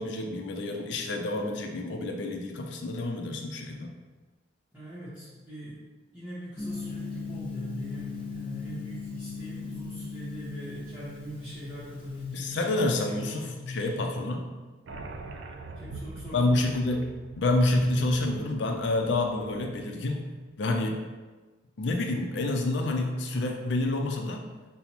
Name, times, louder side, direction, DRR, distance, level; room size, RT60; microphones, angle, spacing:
voice 1, 0.0-3.9 12.3-14.5 16.3-17.1 17.4-20.3 20.6-21.1 21.8-24.5, left 2 dB, 70° left, 3 dB, 0.5 m, -28 dB
voice 2, 4.7-5.8 6.1-14.0 15.8-16.6, left 1 dB, 10° right, -12 dB, 0.7 m, -41 dB
Gong, 6.6-12.4, left 3 dB, 25° left, 0.7 m, -38 dB
sound 1, 14.9-20.1, right 3 dB, 70° right, 0.3 m, -42 dB
5.4 x 2.1 x 2.9 m, 1.3 s
head